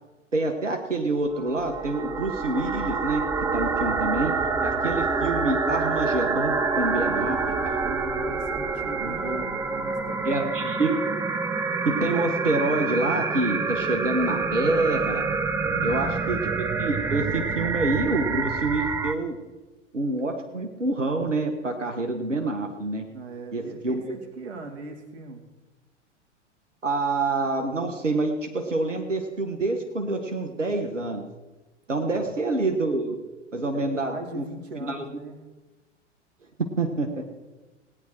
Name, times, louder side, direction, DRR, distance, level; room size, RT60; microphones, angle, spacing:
voice 1, 0.3-3.2 3.5-4.3 4.6-7.4 7.6-7.8 9.0-9.4 10.2-11.0 11.8-15.2 15.8-19.3 19.9-23.0 23.5-24.1 26.8-31.2 31.9-33.2 33.5-34.4 34.8-35.0 36.6-37.3, right 2 dB, 85° right, 4 dB, 1.5 m, -27 dB
sound 1, 1.3-19.1, right 4 dB, 10° right, 0.6 m, -27 dB
voice 2, 7.0-10.8 15.6-16.0 23.1-25.4 32.0-32.2 33.7-35.4, right 3 dB, 60° right, 4 dB, 2.5 m, -40 dB
18.0 x 9.9 x 4.6 m, 1.2 s
figure-of-eight pair, 100°, 36 cm